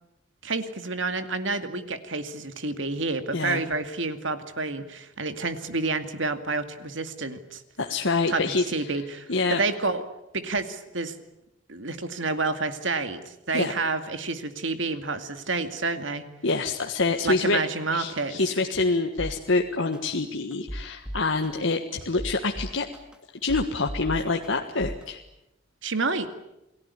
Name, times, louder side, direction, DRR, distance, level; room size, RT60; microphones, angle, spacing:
voice 1, 0.4-7.6 8.3-8.4 8.7-10.0 10.3-11.1 11.7-16.2 17.2-18.4 25.8-26.3, right 3 dB, 70° right, 9 dB, 2.3 m, -29 dB
voice 2, 7.8-9.0 9.3-9.6 13.5-13.7 16.4-17.6 17.9-22.9 23.4-25.2, left 3 dB, 70° left, 3 dB, 1.6 m, -26 dB
sound 1, 19.2-19.4 19.9-20.0 20.5-21.5 22.0-23.2 23.5-24.5 24.8-25.0, equal, 5° right, 2.5 m, -35 dB
29.0 x 18.5 x 9.8 m, 0.91 s
head